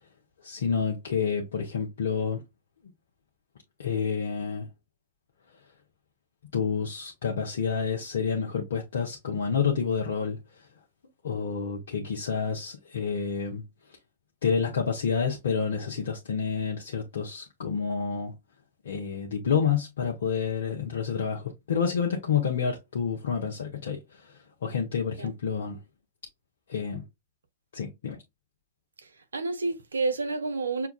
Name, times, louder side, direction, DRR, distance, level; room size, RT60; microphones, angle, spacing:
voice 1, 0.4-2.4 3.8-4.7 6.5-10.7 11.2-13.6 14.4-18.3 18.8-25.8 26.7-27.0 27.7-28.2, left 6 dB, 75° left, 0.8 m, -29 dB
voice 2, 29.0-30.9, right 3 dB, 85° right, 0.7 m, -30 dB
5.6 x 2.3 x 2.3 m
hypercardioid pair, 105°, 0 cm